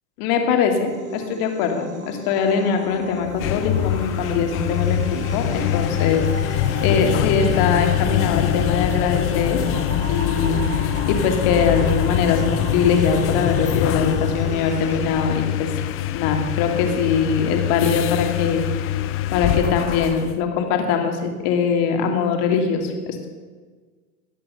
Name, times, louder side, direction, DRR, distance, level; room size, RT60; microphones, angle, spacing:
voice 1, 0.2-10.8 11.1-15.8 16.1-19.0 19.3-23.3, left 6 dB, 50° left, 4 dB, 2.5 m, -22 dB
sound 1, 0.8-15.0, right 3 dB, 35° right, 3.9 m, -34 dB
sound 2, 3.2-20.4, left 12 dB, 30° left, 0.6 m, -24 dB
13.5 x 8.5 x 6.8 m, 1.4 s
hypercardioid pair, 105°, 45 cm